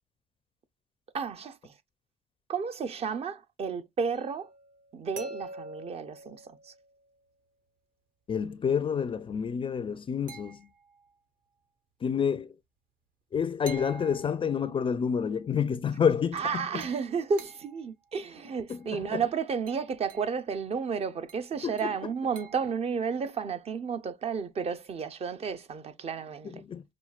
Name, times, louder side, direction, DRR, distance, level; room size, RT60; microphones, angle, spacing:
voice 1, 1.1-1.7 2.5-4.5 4.9-6.7 16.3-26.6, right 6 dB, 35° right, 0.6 m, -32 dB
sound 1, 4.1-7.2 10.3-11.1 13.7-14.9 16.8-17.9 18.7-18.9 19.7-20.4 21.3-22.8, right 3 dB, 55° right, 1.0 m, -47 dB
voice 2, 8.3-10.7 12.0-12.5 13.3-16.8 18.7-19.2 21.6-21.8 26.4-26.8, left 7 dB, 30° left, 0.4 m, -29 dB
5.6 x 2.3 x 2.3 m
cardioid pair, 110°, 17 cm